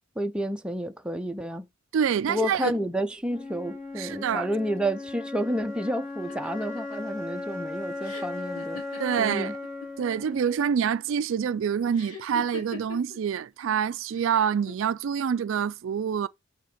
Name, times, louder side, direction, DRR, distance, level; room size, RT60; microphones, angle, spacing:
voice 1, 0.2-1.7 2.3-8.8 9.2-9.5, equal, 5° right, 0.5 m, -30 dB
voice 2, 1.9-2.7 4.0-4.5 9.0-9.5 10.0-16.3, right 7 dB, 60° right, 0.3 m, -26 dB
Wind instrument woodwind instrument, 3.3-11.3, left 3 dB, 35° left, 2.7 m, -37 dB
sound 1, 6.3-9.9 10.2-10.8 11.9-13.2 14.1-14.7, left 4 dB, 85° left, 3.0 m, -42 dB
5.6 x 5.0 x 5.0 m
head